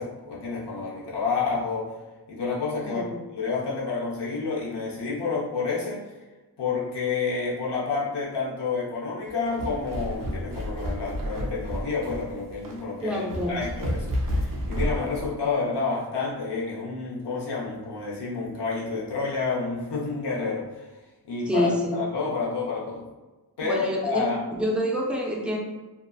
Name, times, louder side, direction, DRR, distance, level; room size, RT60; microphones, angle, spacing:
voice 1, 0.0-2.0 2.3-6.1 6.6-20.9 21.2-23.1 23.6-24.4, left 4 dB, 80° left, -5 dB, 0.6 m, -29 dB
voice 2, 2.8-3.2 13.0-13.6 21.5-22.0 23.6-24.3 24.6-25.6, equal, 5° right, -2 dB, 0.4 m, -27 dB
sound 1, 9.3-15.3, equal, 55° right, 0.5 m, -31 dB
2.6 x 2.3 x 2.3 m, 1.2 s
wide cardioid pair, 120°, 40 cm